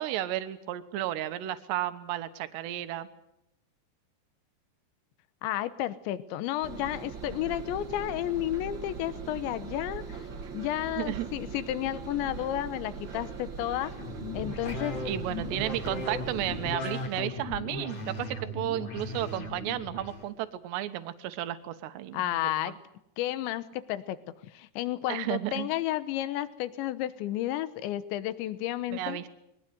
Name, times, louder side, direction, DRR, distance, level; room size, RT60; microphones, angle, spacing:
voice 1, 0.0-3.1 11.0-11.3 15.1-22.7 25.1-25.7 28.9-29.3, right 13 dB, 80° right, 10 dB, 3.2 m, -33 dB
voice 2, 5.4-10.2 10.5-13.9 14.3-15.0 22.1-22.7 23.2-24.2 24.5-29.2, left 13 dB, 85° left, 14 dB, 3.3 m, -32 dB
Engine, 6.6-16.8, right 6 dB, 50° right, 1.4 m, -41 dB
sound 1, 13.9-20.2, left 2 dB, 40° left, 3.0 m, -37 dB
22.5 x 19.5 x 9.4 m, 0.80 s
omnidirectional pair, 5.1 m